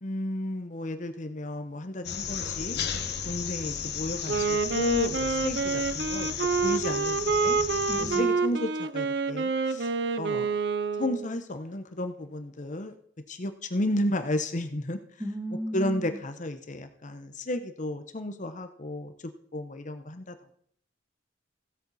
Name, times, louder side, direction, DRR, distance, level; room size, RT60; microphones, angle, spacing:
voice 1, 0.0-2.8 3.2-6.3 6.6-7.6 8.0-10.6 11.0-12.9 13.3-15.0 15.7-19.1 19.5-20.3, left 1 dB, 40° left, 8 dB, 0.9 m, -33 dB
sound 1, 2.0-8.2, left 7 dB, 60° left, 1.3 m, -34 dB
Wind instrument woodwind instrument, 4.2-11.3, right 4 dB, 65° right, 0.7 m, -28 dB
voice 2, 7.9-8.3 15.2-16.2, equal, 10° right, 4 dB, 1.5 m, -34 dB
16.0 x 8.6 x 4.2 m, 0.64 s
head